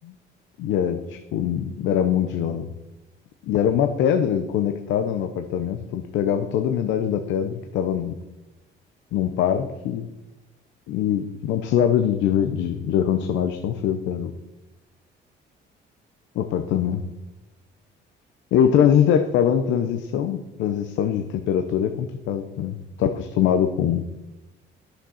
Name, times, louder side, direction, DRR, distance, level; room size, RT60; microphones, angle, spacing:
voice 1, 0.6-2.7 3.4-8.2 9.1-10.1 10.9-14.3 16.3-17.0 18.5-24.0, left 9 dB, 80° left, 7 dB, 0.9 m, -23 dB
12.5 x 6.6 x 6.5 m, 1.0 s
cardioid pair, 170°, 19 cm